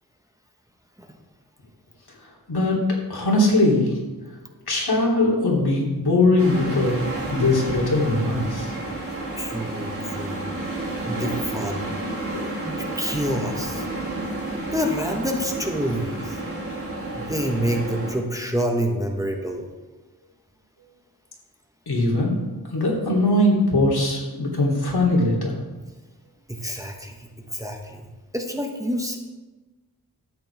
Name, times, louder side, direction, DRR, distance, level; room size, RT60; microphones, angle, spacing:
voice 1, 2.5-2.8 3.1-3.9 4.7-7.0 7.3-8.7 12.3-12.4 21.9-22.4 22.7-25.5, left 2 dB, 75° left, -3 dB, 3.1 m, -20 dB
sound 1, 6.4-18.1, right 2 dB, 35° right, 3.0 m, -31 dB
voice 2, 9.4-10.6 11.1-12.0 12.6-13.9 14.7-16.4 17.2-19.7 26.5-28.1 28.3-29.2, equal, 10° right, 2 dB, 1.1 m, -27 dB
12.5 x 9.0 x 3.5 m, 1.2 s
wide cardioid pair, 100°, 38 cm